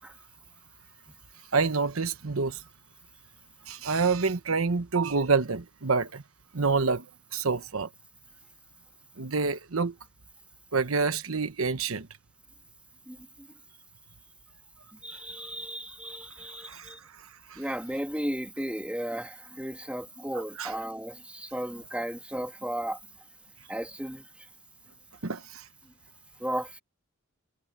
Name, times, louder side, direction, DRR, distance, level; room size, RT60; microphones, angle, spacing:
voice 1, 1.5-2.6 3.7-6.2 6.5-7.0 7.3-7.9 9.2-9.9 10.7-12.1 16.6-16.9 17.5-17.6 20.6-20.7 25.2-25.7, right 4 dB, 80° right, 1.1 m, -27 dB
voice 2, 13.1-13.5 15.0-17.0 17.6-23.0 23.7-24.3 26.4-26.8, right 1 dB, 5° right, 2.7 m, -35 dB
head